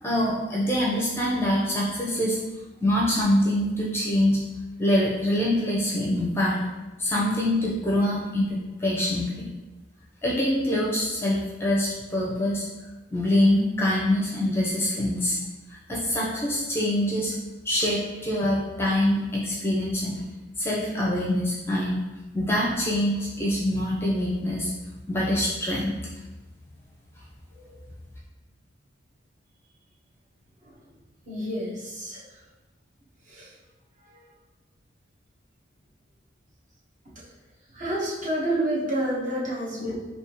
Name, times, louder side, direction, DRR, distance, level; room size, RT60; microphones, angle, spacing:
voice 1, 0.0-2.4 2.8-4.4 4.8-6.7 7.0-9.5 10.2-12.6 13.1-15.4 15.9-17.3 17.6-20.2 20.6-22.0 22.3-24.7 25.1-26.0, left 1 dB, 10° left, -4 dB, 0.6 m, -24 dB
voice 2, 31.3-32.2 33.3-33.5 37.7-39.9, right 1 dB, 40° right, -7 dB, 1.2 m, -28 dB
3.5 x 2.8 x 4.5 m, 1.1 s
head